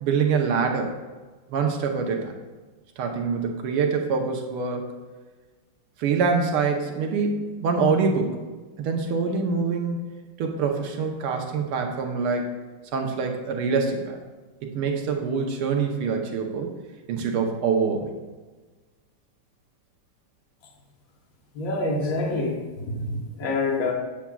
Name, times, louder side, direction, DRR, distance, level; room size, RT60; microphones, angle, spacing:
voice 1, 0.0-0.9 1.5-2.3 3.0-4.9 6.0-8.4 8.8-10.0 10.4-12.5 12.9-14.2 14.7-16.7 17.1-18.1, right 5 dB, 85° right, 2 dB, 1.8 m, -25 dB
voice 2, 21.5-23.9, left 2 dB, 50° left, 1 dB, 1.3 m, -27 dB
8.5 x 7.2 x 2.3 m, 1.3 s
omnidirectional pair, 2.3 m